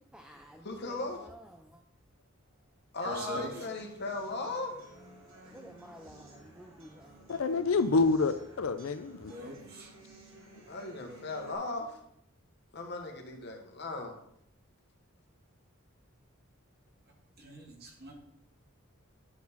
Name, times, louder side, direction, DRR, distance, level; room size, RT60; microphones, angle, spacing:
voice 1, 0.1-1.8 5.2-7.7 9.2-9.5, equal, 5° right, 0.4 m, -53 dB
voice 2, 0.6-1.2 2.9-4.7 10.6-12.0 12.7-14.1, left 2 dB, 55° left, 1.3 m, -37 dB
voice 3, 3.0-3.7 9.3-9.9 17.4-18.1, right 1 dB, 50° right, 1.7 m, -42 dB
sound 1, 3.6-11.5, right 2 dB, 65° right, 2.0 m, -55 dB
voice 4, 7.3-9.3, left 4 dB, 75° left, 0.5 m, -27 dB
10.5 x 4.6 x 4.0 m
head